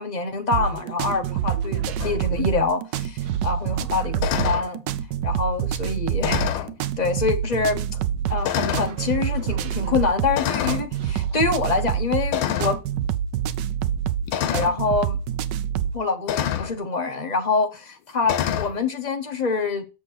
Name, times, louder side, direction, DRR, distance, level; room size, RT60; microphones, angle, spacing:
voice 1, 0.0-4.8 5.2-6.4 7.0-7.9 8.3-12.8 14.5-15.2 15.9-19.8, left 4 dB, 40° left, 0.6 m, -25 dB
sound 1, 0.5-16.0, right 9 dB, 75° right, 1.2 m, -27 dB
sound 2, 2.0-2.2 4.2-4.7 6.2-6.7 7.6-7.7 8.4-9.0 10.4-10.9 12.3-12.8 14.3-14.8 16.3-16.7 18.2-18.7, left 10 dB, 85° left, 1.4 m, -26 dB
7.2 x 4.7 x 6.1 m
omnidirectional pair, 2.0 m